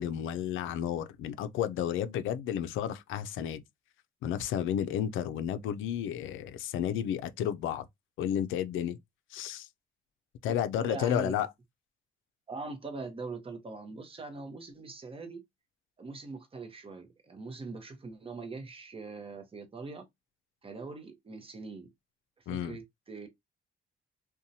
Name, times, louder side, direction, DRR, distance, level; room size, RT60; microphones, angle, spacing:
voice 1, 0.0-3.6 4.2-7.9 8.2-9.0 9.3-9.7 10.4-11.5 22.5-22.8, left 10 dB, 85° left, 0.4 m, -32 dB
voice 2, 10.8-11.3 12.5-15.4 16.0-20.1 20.6-21.9 22.5-23.3, right 3 dB, 30° right, 0.8 m, -42 dB
2.7 x 2.2 x 2.6 m
cardioid pair, 90°, 20 cm